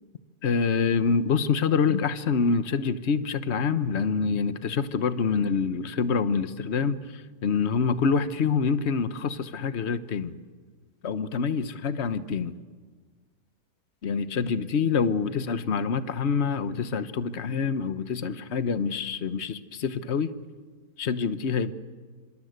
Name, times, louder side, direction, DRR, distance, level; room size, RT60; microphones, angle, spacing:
voice 1, 0.4-10.4 11.0-12.6 14.0-20.3 21.0-21.7, left 5 dB, 45° left, 12 dB, 1.2 m, -26 dB
27.0 x 26.0 x 8.1 m, 1.5 s
omnidirectional pair, 1.8 m